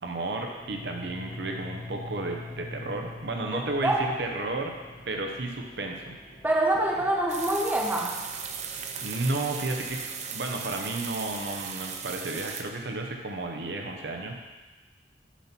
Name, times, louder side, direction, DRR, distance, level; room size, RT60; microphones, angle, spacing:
voice 1, 0.0-4.7 5.1-6.1 9.0-10.0 10.3-14.3, right 2 dB, 70° right, 2 dB, 0.8 m, -32 dB
sound 1, 0.5-12.5, left 2 dB, 50° left, 2.3 m, -46 dB
voice 2, 3.5-4.1 6.4-8.2, right 1 dB, 10° right, -2 dB, 0.9 m, -26 dB
sound 2, 7.3-12.6, right 7 dB, 40° right, 0.5 m, -37 dB
7.1 x 4.4 x 5.9 m, 1.2 s
head